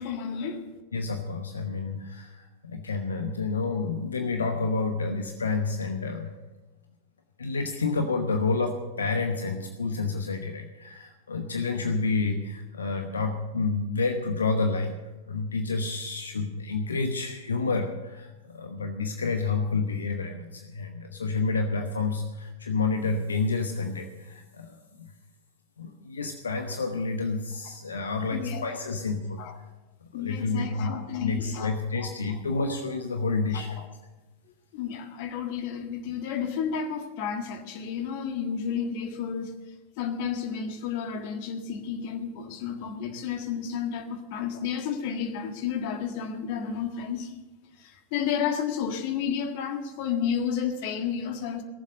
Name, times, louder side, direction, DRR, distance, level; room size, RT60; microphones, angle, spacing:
voice 1, 0.0-0.8 28.3-28.6 29.4-29.5 30.1-32.1 33.5-33.9 34.7-39.5 40.0-47.3 47.8-51.6, left 7 dB, 50° left, 6 dB, 1.6 m, -31 dB
voice 2, 0.9-6.3 7.4-15.0 15.3-25.1 25.8-29.6 30.0-30.9 31.2-33.8, left 4 dB, 70° left, 5 dB, 1.0 m, -29 dB
18.0 x 7.4 x 7.7 m, 1.2 s
figure-of-eight pair, 90°, 0 cm